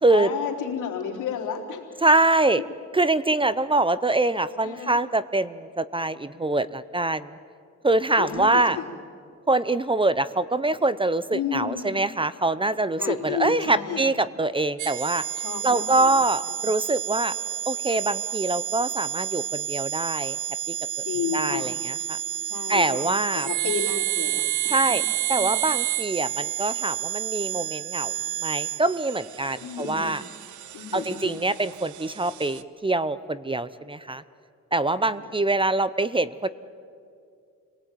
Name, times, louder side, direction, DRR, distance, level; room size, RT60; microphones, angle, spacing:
voice 1, 0.1-2.0 4.6-5.0 8.2-8.9 11.3-11.9 13.0-14.1 15.4-16.1 16.5-16.6 21.0-21.7 22.4-23.1 23.3-24.8 25.4-25.5 29.6-30.2 30.7-31.4 35.0-35.3, left 8 dB, 80° left, 0 dB, 3.8 m, -32 dB
voice 2, 2.0-2.6 2.9-7.3 7.8-8.8 9.5-15.2 15.6-17.3 17.7-20.4 20.7-20.8 21.3-22.2 22.7-23.5 24.7-25.0 25.3-28.1 28.4-30.2 30.9-34.2 34.7-36.5, right 2 dB, 15° right, 16 dB, 0.7 m, -24 dB
sound 1, 14.8-32.6, right 13 dB, 75° right, 1.0 m, -30 dB
29.0 x 19.0 x 9.2 m, 2.4 s
cardioid pair, 90°, 30 cm